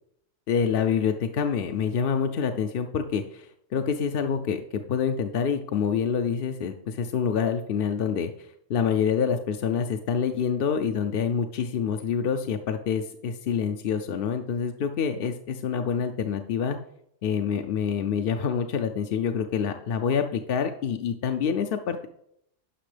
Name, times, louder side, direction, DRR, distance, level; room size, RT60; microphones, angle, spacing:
voice 1, 0.5-3.5 3.7-8.3 8.7-16.8 17.2-22.1, left 7 dB, 60° left, 6 dB, 0.7 m, -26 dB
10.0 x 6.0 x 3.3 m, 0.71 s
omnidirectional pair, 1.2 m